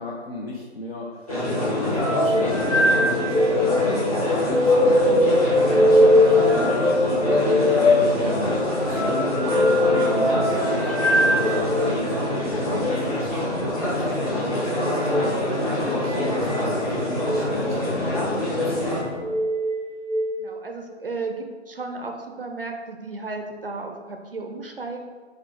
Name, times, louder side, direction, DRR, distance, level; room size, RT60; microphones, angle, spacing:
voice 1, 0.0-15.4 15.7-19.4, left 2 dB, 55° left, -3 dB, 0.6 m, -34 dB
sound 1, 1.3-19.0, left 1 dB, 30° left, 1.1 m, -25 dB
sound 2, 2.0-11.9 12.7-13.0 15.0-15.3 16.1-16.6 17.1-17.4 18.2-18.7 19.2-20.3, left 1 dB, 85° left, 1.0 m, -21 dB
voice 2, 20.4-25.0, right 3 dB, 50° right, 3 dB, 0.5 m, -34 dB
5.4 x 2.3 x 3.5 m, 1.5 s
figure-of-eight pair, 155°, 35 cm